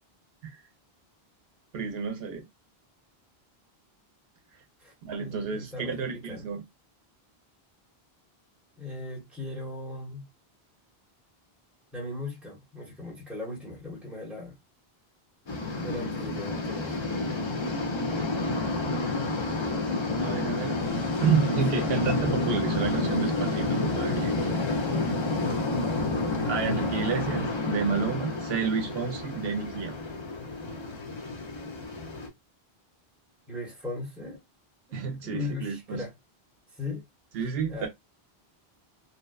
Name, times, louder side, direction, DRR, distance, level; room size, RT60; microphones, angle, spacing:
voice 1, 1.7-2.5 5.0-6.6 20.2-20.8 21.2-24.5 26.5-30.0 34.9-36.0 37.3-37.9, right 6 dB, 75° right, 0.8 m, -30 dB
voice 2, 5.2-6.4 8.8-10.3 11.9-14.6 15.7-17.0 33.5-34.4 34.9-36.1 36.8-37.0 37.7-37.9, left 2 dB, ahead, 0.9 m, -38 dB
sound 1, 15.5-32.3, left 2 dB, 40° left, 0.4 m, -29 dB
2.7 x 2.1 x 2.2 m
omnidirectional pair, 1.0 m